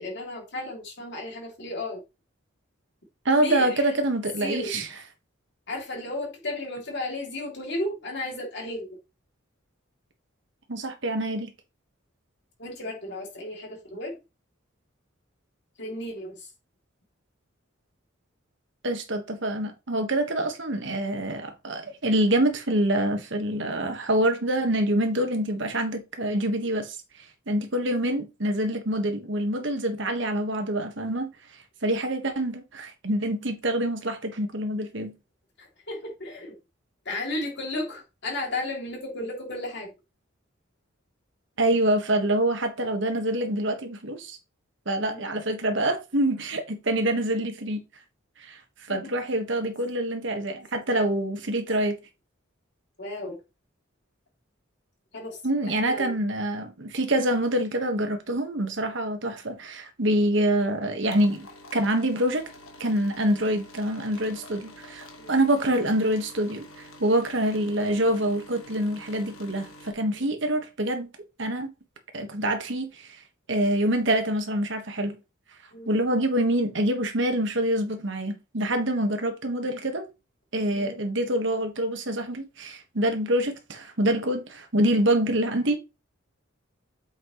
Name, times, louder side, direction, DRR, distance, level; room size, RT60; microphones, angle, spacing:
voice 1, 0.0-2.0 3.4-3.9 4.4-4.7 5.7-8.9 12.6-14.1 15.8-16.5 35.6-36.6 37.0-39.9 45.0-45.2 48.9-49.2 53.0-53.4 55.1-55.4 55.7-56.1 65.2-65.3 75.7-75.9 80.7-80.9, left 2 dB, 55° left, 2.9 m, -34 dB
voice 2, 3.2-4.9 10.7-11.5 18.8-27.0 27.5-31.3 31.8-35.1 41.6-44.4 44.8-47.8 48.4-48.6 48.9-52.0 55.4-61.5 61.7-62.5 62.8-71.1 71.4-71.7 72.1-73.1 73.5-75.2 75.9-80.0 80.5-85.8, right 1 dB, 60° right, 1.5 m, -26 dB
sound 1, 61.0-69.9, left 1 dB, 90° left, 1.6 m, -47 dB
8.2 x 5.8 x 3.1 m
head